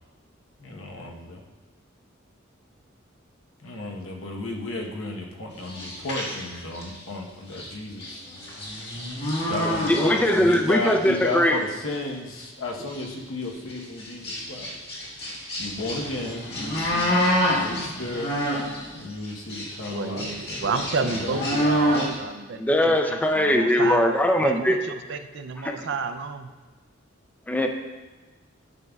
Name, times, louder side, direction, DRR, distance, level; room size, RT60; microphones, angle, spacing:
voice 1, 0.6-1.4 3.6-8.2 9.3-14.8 15.6-18.3 18.9-21.4, left 2 dB, 85° left, 1 dB, 1.1 m, -33 dB
sound 1, 5.6-7.0 7.5-7.7 8.0-10.6 10.8-11.3 11.9-12.0 12.4-12.5 12.8-13.0 13.7-18.9 19.2-22.2, equal, 55° left, 1.6 m, -28 dB
voice 2, 9.6-11.6 22.6-24.8 25.6-25.7 27.5-27.7, left 1 dB, 10° left, 3 dB, 0.4 m, -21 dB
voice 3, 19.9-24.0 24.4-26.5, right 5 dB, 65° right, 9 dB, 0.5 m, -31 dB
11.0 x 5.3 x 2.3 m, 1.3 s
head